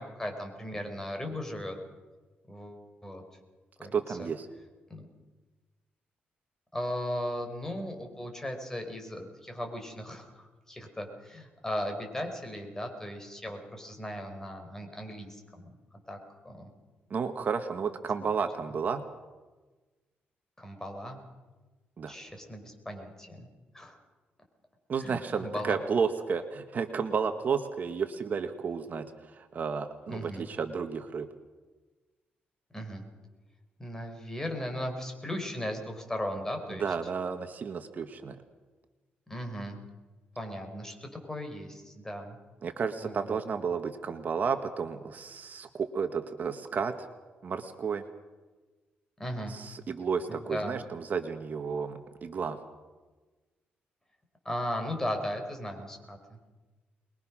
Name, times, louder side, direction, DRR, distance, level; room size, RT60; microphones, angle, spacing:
voice 1, 0.0-1.8 2.5-3.2 3.8-4.3 4.9-5.0 6.7-15.7 16.1-16.2 16.4-16.7 18.2-18.3 20.6-21.2 22.1-23.5 23.7-24.0 25.0-25.8 30.1-30.4 32.7-33.0 33.8-37.1 39.3-39.8 40.4-42.4 43.0-43.4 49.2-49.5 50.3-50.8 54.4-56.5, equal, 10° left, 4 dB, 4.8 m, -37 dB
voice 2, 3.9-4.5 17.1-19.0 22.0-22.1 24.9-29.1 29.3-31.3 36.7-38.4 42.6-46.9 47.4-48.0 49.5-52.6, right 6 dB, 50° right, 7 dB, 1.6 m, -32 dB
24.0 x 21.5 x 6.3 m, 1.3 s
cardioid pair, 100°, 4 cm